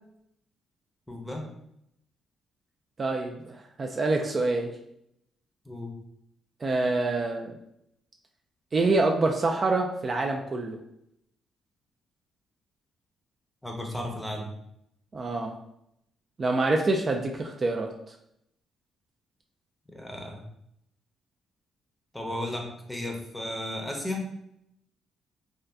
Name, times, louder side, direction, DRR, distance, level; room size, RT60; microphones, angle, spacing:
voice 1, 1.1-1.5 5.7-5.9 13.6-14.5 19.9-20.4 22.1-24.2, left 1 dB, 5° left, 1 dB, 0.7 m, -34 dB
voice 2, 3.0-4.7 6.6-7.5 8.7-10.8 15.1-15.6 16.4-17.9, right 2 dB, 35° right, 2 dB, 0.3 m, -26 dB
2.6 x 2.3 x 3.3 m, 0.76 s
cardioid pair, 90°, 0 cm